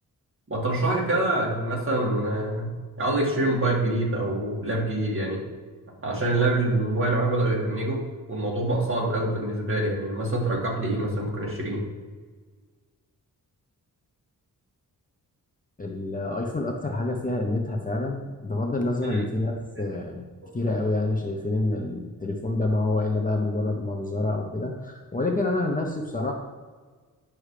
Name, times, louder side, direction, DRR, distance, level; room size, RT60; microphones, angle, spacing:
voice 1, 0.5-2.7 3.0-5.4 6.0-8.0 8.3-11.8 19.0-19.2, right 2 dB, 35° right, -4 dB, 2.1 m, -25 dB
voice 2, 15.8-20.2 20.5-26.3, left 2 dB, 25° left, 0 dB, 0.7 m, -27 dB
9.9 x 6.1 x 3.3 m, 1.5 s
wide cardioid pair, 155°, 36 cm